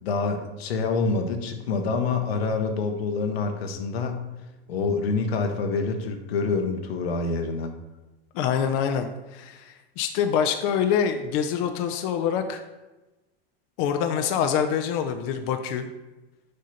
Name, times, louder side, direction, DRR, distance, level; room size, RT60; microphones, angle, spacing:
voice 1, 0.0-4.3 4.7-7.7, left 4 dB, 85° left, 5 dB, 0.9 m, -26 dB
voice 2, 8.3-12.6 13.8-15.9, left 8 dB, 50° left, 6 dB, 0.5 m, -25 dB
6.5 x 2.8 x 5.6 m, 1.1 s
supercardioid pair, 120°, 30 cm